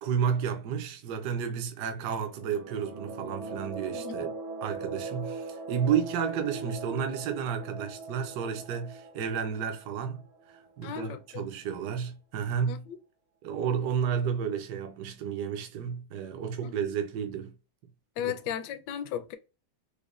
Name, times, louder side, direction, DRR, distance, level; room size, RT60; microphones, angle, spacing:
voice 1, 0.0-4.3 4.6-10.2 10.5-12.8 13.4-17.5 18.2-18.3, right 7 dB, 70° right, 1.2 m, -31 dB
sound 1, 2.3-10.9, right 3 dB, 45° right, 0.7 m, -40 dB
voice 2, 10.8-11.5 12.7-13.0 18.2-19.4, left 10 dB, 75° left, 1.1 m, -35 dB
5.0 x 2.2 x 2.4 m
omnidirectional pair, 2.0 m